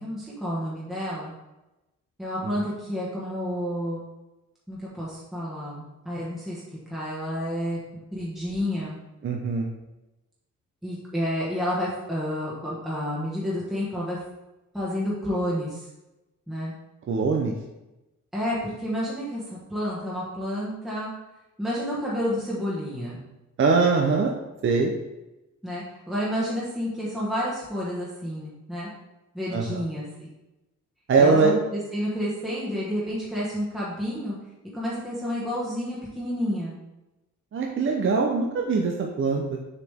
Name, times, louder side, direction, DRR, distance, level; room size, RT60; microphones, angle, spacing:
voice 1, 0.0-1.3 2.2-4.0 4.7-9.0 10.8-14.2 14.7-15.9 16.5-16.7 18.3-21.1 21.6-23.2 25.6-28.9 29.3-30.3 31.2-34.3 34.7-36.8, equal, ahead, -7 dB, 1.3 m, -30 dB
voice 2, 9.2-9.7 17.1-17.5 23.6-24.3 24.6-24.9 29.5-29.8 31.1-31.5 37.5-39.6, right 4 dB, 45° right, 1 dB, 0.7 m, -22 dB
6.9 x 4.9 x 3.6 m, 0.98 s
wide cardioid pair, 155°, 30 cm